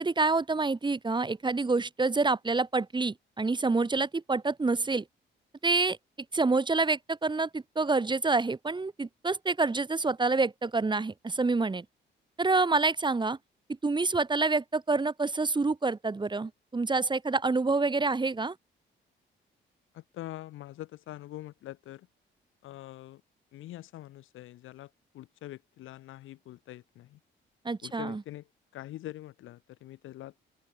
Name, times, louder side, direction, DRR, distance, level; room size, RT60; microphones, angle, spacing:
voice 1, 0.0-5.0 5.6-6.0 6.3-11.9 12.4-13.4 13.8-18.6 27.6-28.2, right 3 dB, 25° right, 2.3 m, -27 dB
voice 2, 19.9-22.1 22.6-23.2 23.5-27.2 27.8-28.5 28.7-30.3, left 15 dB, 85° left, 7.2 m, -44 dB
open air
cardioid pair, 90°, 20 cm